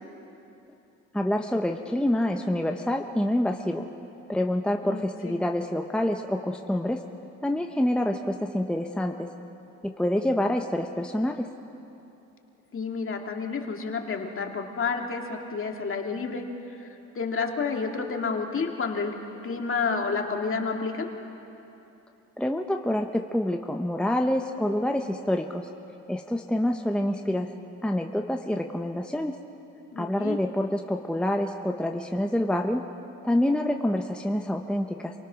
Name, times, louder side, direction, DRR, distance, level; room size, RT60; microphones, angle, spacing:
voice 1, 1.1-3.9 4.3-7.0 7.4-9.3 9.8-11.5 22.4-25.7 26.1-27.5 27.8-29.3 30.0-32.8 33.2-35.1, left 1 dB, 5° left, 3 dB, 0.9 m, -27 dB
voice 2, 4.8-5.4 12.7-16.4 16.8-16.9 17.1-19.1 19.4-21.1 29.9-30.4, left 5 dB, 45° left, 2 dB, 2.4 m, -30 dB
28.0 x 18.5 x 6.3 m, 2.9 s
cardioid pair, 90°, 30 cm